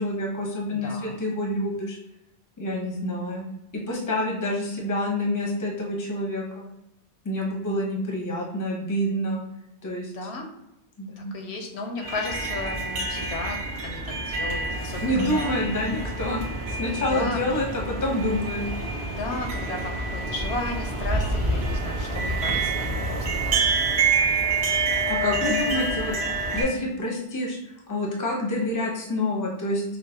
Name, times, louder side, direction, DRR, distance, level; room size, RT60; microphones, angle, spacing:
voice 1, 0.0-2.0 2.6-3.5 3.7-6.7 7.2-9.4 9.8-10.1 11.0-11.4 15.0-16.4 16.8-18.6 25.1-26.1 26.5-27.6 27.9-29.8, left 1 dB, 20° left, -1 dB, 0.6 m, -27 dB
voice 2, 0.6-1.2 10.1-10.5 11.2-15.6 17.0-17.4 19.1-23.9 25.3-25.4, left 3 dB, 70° left, 2 dB, 0.9 m, -34 dB
sound 1, 12.0-26.6, right 3 dB, 65° right, 1.1 m, -27 dB
5.7 x 2.1 x 2.7 m, 0.86 s
omnidirectional pair, 1.2 m